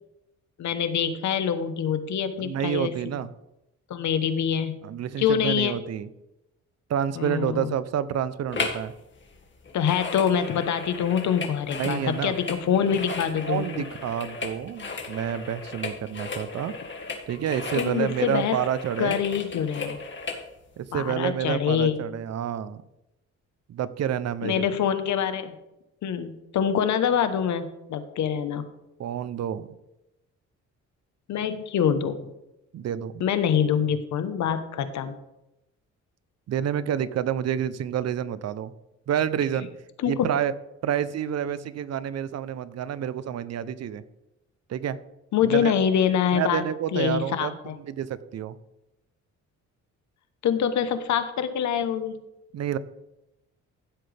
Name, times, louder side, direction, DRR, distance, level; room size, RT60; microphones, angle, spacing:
voice 1, 0.6-2.9 3.9-4.8 5.2-5.8 7.2-7.7 9.7-13.8 17.7-18.6 19.0-20.0 20.9-22.0 24.4-25.6 26.0-28.6 31.3-32.2 33.2-35.2 40.0-40.3 45.3-46.6 46.9-47.8 50.4-52.2, left 8 dB, 70° left, 10 dB, 1.1 m, -25 dB
voice 2, 2.4-3.3 4.8-6.1 6.9-8.9 11.7-12.4 13.4-16.7 17.3-19.2 20.8-22.8 23.7-24.7 29.0-29.7 32.7-33.2 36.5-38.7 39.1-39.7 40.1-40.5 40.8-44.0 44.7-45.0 45.4-45.7 46.3-48.6 52.5-52.8, right 9 dB, 60° right, 15 dB, 0.7 m, -29 dB
sound 1, 8.5-8.9 9.1-20.4 21.0-21.1, left 4 dB, 40° left, 2.0 m, -36 dB
15.5 x 7.8 x 3.4 m, 0.93 s
cardioid pair, 90°, 30 cm